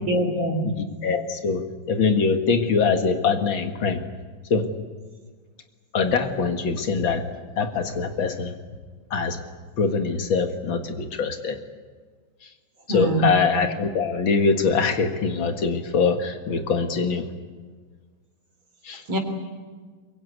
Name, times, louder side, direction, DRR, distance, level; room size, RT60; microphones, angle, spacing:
voice 1, 0.1-0.7 12.9-13.3 19.1-19.2, right 1 dB, 80° right, 4 dB, 4.1 m, -23 dB
voice 2, 0.6-4.0 4.5-4.7 5.9-7.2 7.6-8.5 9.1-9.4 9.8-11.6 12.9-17.3 18.8-19.0, left 5 dB, 80° left, 6 dB, 2.6 m, -23 dB
23.5 x 22.5 x 9.5 m, 1.5 s
omnidirectional pair, 2.1 m